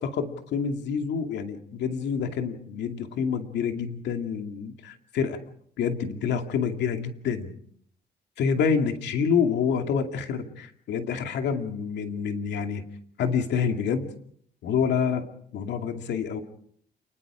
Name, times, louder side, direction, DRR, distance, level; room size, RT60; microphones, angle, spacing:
voice 1, 0.0-5.4 5.8-7.5 8.4-12.9 13.2-14.1 14.6-16.4, left 6 dB, 80° left, 6 dB, 2.4 m, -27 dB
29.0 x 20.0 x 5.0 m, 0.64 s
cardioid pair, 110°, 18 cm